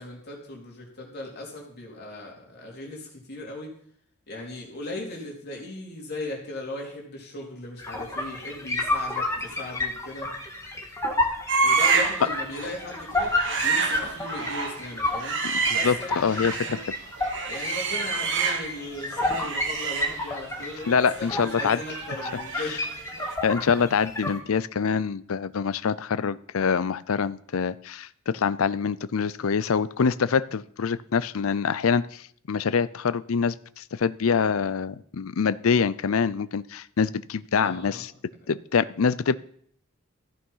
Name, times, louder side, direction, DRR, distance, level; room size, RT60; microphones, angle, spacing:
voice 1, 0.0-3.8 4.3-10.3 11.6-13.4 13.6-15.4 15.7-16.8 17.5-22.8 23.1-23.2 37.6-38.1, left 2 dB, 50° left, -1 dB, 3.6 m, -37 dB
sound 1, 7.8-24.4, left 2 dB, 15° left, 2.0 m, -31 dB
sound 2, 11.5-12.3 12.6-12.8 13.2-16.8 17.2-18.8 19.1-22.9 23.2-23.4, right 5 dB, 60° right, 1.6 m, -28 dB
voice 2, 15.7-16.8 20.9-21.8 23.4-38.1 38.5-39.4, left 6 dB, 70° left, 17 dB, 0.5 m, -25 dB
14.5 x 8.4 x 5.6 m, 0.62 s
head